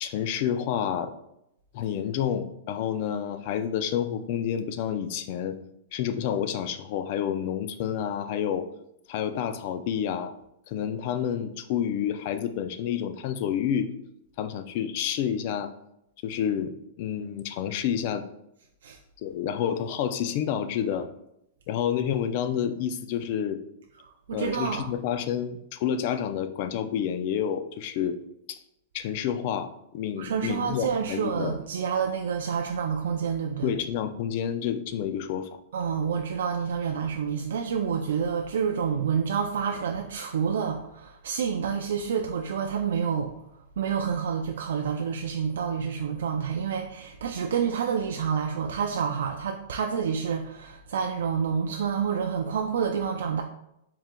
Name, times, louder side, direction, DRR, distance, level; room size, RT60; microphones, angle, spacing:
voice 1, 0.0-1.1 1.7-5.6 5.9-8.7 9.1-10.3 10.7-13.9 14.4-15.7 16.2-18.3 19.2-21.1 21.7-23.6 24.3-28.2 28.5-28.6 28.9-31.6 33.6-35.5, left 9 dB, 40° left, 10 dB, 0.3 m, -29 dB
voice 2, 24.0-24.9 30.2-33.8 35.7-43.3 43.8-53.4, right 7 dB, 90° right, 3 dB, 0.3 m, -28 dB
4.5 x 3.6 x 2.2 m, 0.81 s
supercardioid pair, 165°, 0 cm